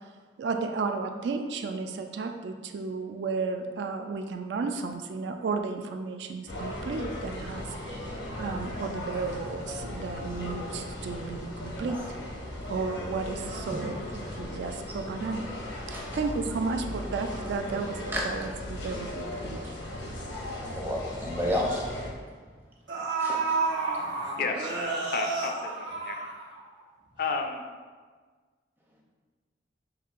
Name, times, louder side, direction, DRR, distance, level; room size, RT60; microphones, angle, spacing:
voice 1, 0.4-12.2 12.7-15.5 15.9-18.0 18.2-19.7, right 4 dB, 65° right, 5 dB, 0.3 m, -33 dB
sound 1, 6.5-22.1, left 1 dB, 85° left, 0.8 m, -37 dB
voice 2, 20.7-21.8 23.2-23.4, equal, 10° right, -2 dB, 0.5 m, -31 dB
sound 2, 22.4-22.5 22.9-26.8 27.1-27.2, right 4 dB, 80° right, 1.1 m, -30 dB
voice 3, 25.1-26.3 27.2-27.6, left 4 dB, 50° left, 4 dB, 0.3 m, -32 dB
6.0 x 2.7 x 2.4 m, 1.5 s
head